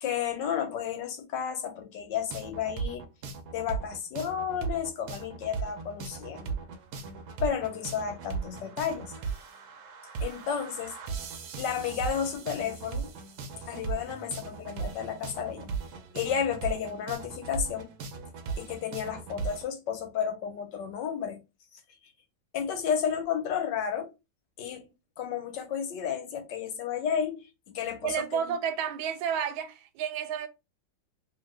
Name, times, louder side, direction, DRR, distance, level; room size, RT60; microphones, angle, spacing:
voice 1, 0.0-3.1 3.5-6.5 7.4-9.1 10.2-10.9 11.6-13.1 13.7-15.7 16.1-17.9 18.6-21.4 22.5-24.1 24.6-24.8 25.2-27.4 27.7-28.1, left 8 dB, 70° left, 1.3 m, -32 dB
sound 1, 2.3-19.6, right 5 dB, 70° right, 1.0 m, -37 dB
voice 2, 28.0-30.5, right 8 dB, 85° right, 1.4 m, -31 dB
2.9 x 2.8 x 3.2 m
omnidirectional pair, 2.1 m